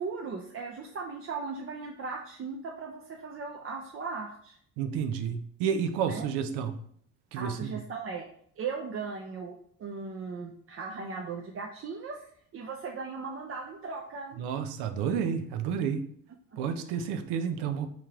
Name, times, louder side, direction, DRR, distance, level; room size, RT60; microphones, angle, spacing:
voice 1, 0.0-4.6 6.1-6.3 7.4-8.3 8.6-12.3 12.5-14.4 16.8-17.0, right 4 dB, 35° right, 1 dB, 0.5 m, -38 dB
voice 2, 4.8-6.8 7.3-7.8 14.4-16.1 16.6-17.9, right 7 dB, 90° right, 8 dB, 0.5 m, -30 dB
3.7 x 3.0 x 2.9 m, 0.64 s
cardioid pair, 85°, 39 cm